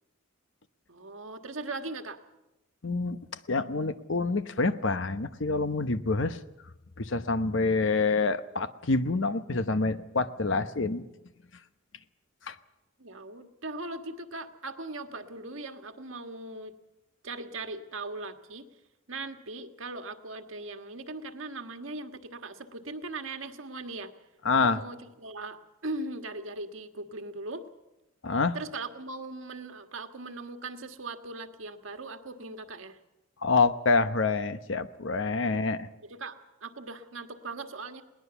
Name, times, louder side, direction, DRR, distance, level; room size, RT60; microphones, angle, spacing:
voice 1, 0.9-2.2 13.0-16.7 17.2-18.7 19.1-24.1 24.6-27.6 28.5-33.0 35.4-35.6 36.1-38.0, right 2 dB, 85° right, 7 dB, 1.6 m, -39 dB
voice 2, 2.8-3.2 3.5-6.4 7.0-11.0 12.5-12.6 24.4-24.8 28.2-28.6 33.4-35.9, left 3 dB, 70° left, 11 dB, 1.0 m, -27 dB
21.0 x 19.0 x 7.0 m, 0.98 s
head